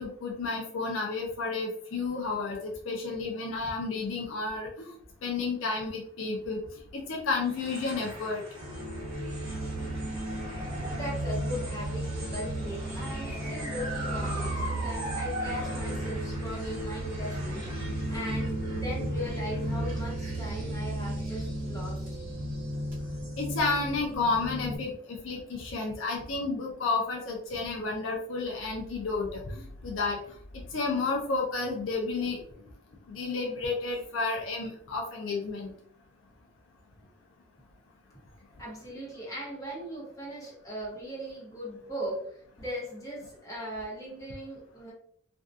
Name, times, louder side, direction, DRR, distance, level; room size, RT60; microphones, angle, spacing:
voice 1, 0.0-2.6 2.9-4.9 5.2-6.6 6.9-8.4 23.4-30.2 30.7-32.4 33.1-35.7, left 3 dB, 65° left, 0 dB, 0.4 m, -31 dB
sound 1, 7.4-23.9, right 1 dB, 15° right, 1.3 m, -42 dB
sound 2, 8.5-24.8, right 1 dB, 40° right, 0.9 m, -34 dB
voice 2, 10.9-22.0 38.6-44.9, equal, 15° left, -6 dB, 1.0 m, -39 dB
2.6 x 2.2 x 2.3 m, 0.63 s
head